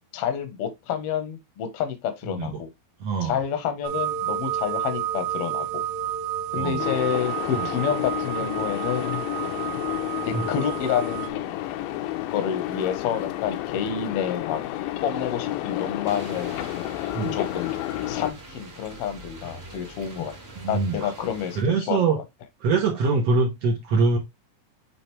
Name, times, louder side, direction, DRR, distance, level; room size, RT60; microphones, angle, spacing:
voice 1, 0.1-2.7 3.2-5.8 6.5-9.2 10.2-11.5 12.3-14.6 15.0-16.6 17.3-17.8 18.1-20.3 20.7-22.1, left 8 dB, 65° left, 1.5 m, -29 dB
voice 2, 3.0-3.4 6.6-6.8 7.5-7.7 10.3-10.5 17.1-17.4 20.6-21.1 21.6-22.2 22.6-24.2, right 4 dB, 65° right, 1.7 m, -23 dB
sound 1, 3.8-11.3, right 10 dB, 90° right, 2.5 m, -30 dB
sound 2, 6.8-18.3, left 14 dB, 85° left, 2.5 m, -31 dB
sound 3, 16.0-21.6, right 1 dB, 30° right, 1.3 m, -44 dB
7.9 x 3.9 x 3.2 m
omnidirectional pair, 4.2 m